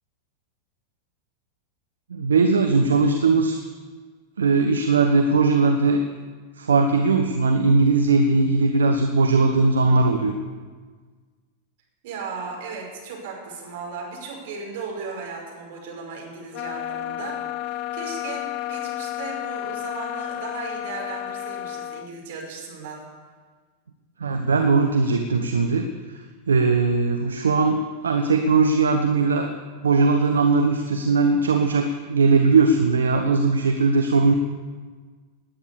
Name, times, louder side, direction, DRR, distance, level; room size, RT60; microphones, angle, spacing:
voice 1, 2.1-3.6 4.4-6.0 6.6-10.3 24.2-26.2 26.5-29.5 29.7-34.3, right 3 dB, 70° right, 5 dB, 1.0 m, -19 dB
voice 2, 12.0-23.0, right 4 dB, 55° right, -1 dB, 5.5 m, -36 dB
sound 1, 16.5-22.1, left 13 dB, 40° left, 0.6 m, -31 dB
19.0 x 9.4 x 7.0 m, 1.5 s
figure-of-eight pair, 90°, 0 cm